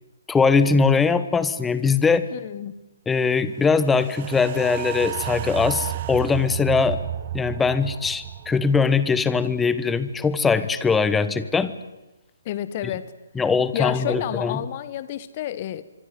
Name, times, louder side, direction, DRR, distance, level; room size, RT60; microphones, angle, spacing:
voice 1, 0.3-2.3 3.1-7.0 7.3-11.7 13.3-14.6, left 5 dB, 5° left, 14 dB, 1.1 m, -21 dB
voice 2, 2.3-2.7 12.4-13.1 13.7-15.8, left 12 dB, 35° left, 15 dB, 1.2 m, -30 dB
sound 1, 3.7-10.1 10.5-10.6, right 12 dB, 35° right, 1.4 m, -33 dB
25.5 x 23.5 x 9.4 m, 0.99 s
figure-of-eight pair, 135°, 0 cm